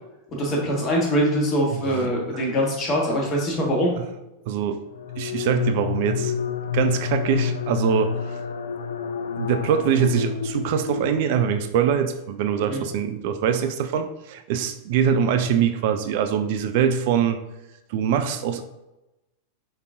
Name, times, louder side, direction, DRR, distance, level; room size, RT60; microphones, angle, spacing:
voice 1, 0.3-3.9 12.7-12.8, equal, 30° left, -2 dB, 1.5 m, -23 dB
voice 2, 1.9-2.5 4.5-4.8 5.2-6.3 6.7-8.1 9.4-17.4 17.9-18.6, right 8 dB, 50° right, 8 dB, 0.3 m, -23 dB
sound 1, 4.9-11.8, left 7 dB, 65° left, 0.3 m, -29 dB
5.1 x 4.0 x 2.5 m, 0.98 s
figure-of-eight pair, 90°, 0 cm